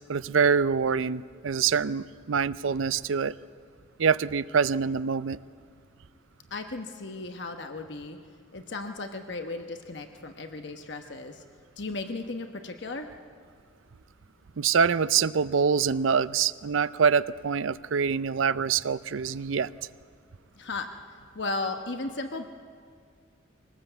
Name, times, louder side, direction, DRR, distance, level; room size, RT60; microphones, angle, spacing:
voice 1, 0.1-3.3 4.0-5.4 14.6-19.7, right 6 dB, 75° right, 16 dB, 0.5 m, -25 dB
voice 2, 6.5-8.2 8.5-11.4 11.8-13.1 20.6-20.9 21.3-22.5, left 3 dB, 60° left, 6 dB, 1.1 m, -35 dB
22.5 x 19.0 x 8.0 m, 2.1 s
head